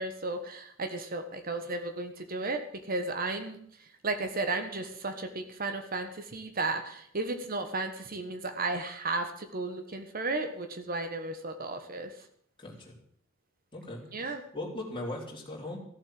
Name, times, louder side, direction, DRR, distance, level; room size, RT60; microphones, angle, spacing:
voice 1, 0.0-12.3 14.1-14.4, right 3 dB, 45° right, 8 dB, 1.4 m, -34 dB
voice 2, 12.6-12.9 13.7-15.8, left 2 dB, 25° left, -2 dB, 3.7 m, -39 dB
14.5 x 7.6 x 7.6 m, 0.65 s
head